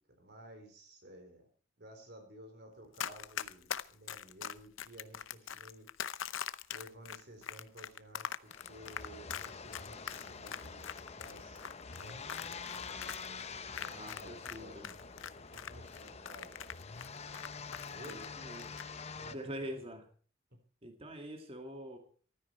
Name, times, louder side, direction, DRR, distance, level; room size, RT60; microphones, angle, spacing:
voice 1, 0.0-1.5 1.8-5.9 6.7-11.6 11.9-13.3 13.7-16.7 17.9-18.3 19.1-19.8, right 1 dB, 50° right, 5 dB, 3.8 m, -55 dB
Run, 3.0-14.6 14.8-18.3 18.5-18.9, left 8 dB, 70° left, 0.7 m, -42 dB
sound 1, 8.5-19.4, left 5 dB, 30° left, 0.9 m, -46 dB
voice 2, 13.9-14.9 18.0-18.7 19.3-20.1 20.8-22.0, equal, 30° right, 5 dB, 2.2 m, -45 dB
15.0 x 13.0 x 4.5 m, 0.42 s
head